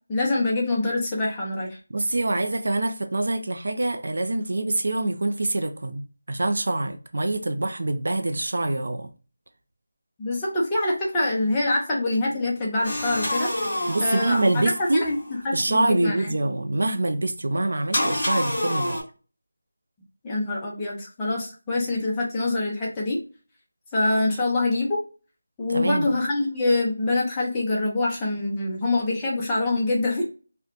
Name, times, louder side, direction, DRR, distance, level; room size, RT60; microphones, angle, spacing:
voice 1, 0.1-1.8 10.2-13.5 14.0-14.6 15.0-15.2 15.4-16.3 20.2-23.2 23.9-25.0 25.6-30.2, left 2 dB, 10° left, 0.5 m, -25 dB
voice 2, 1.9-9.1 13.9-15.0 15.5-19.0 25.7-26.1, right 2 dB, 55° right, 0.3 m, -25 dB
sound 1, 12.8-15.3 17.9-19.0, left 1 dB, 25° left, 1.0 m, -28 dB
2.8 x 2.1 x 2.3 m
figure-of-eight pair, 180°, 0 cm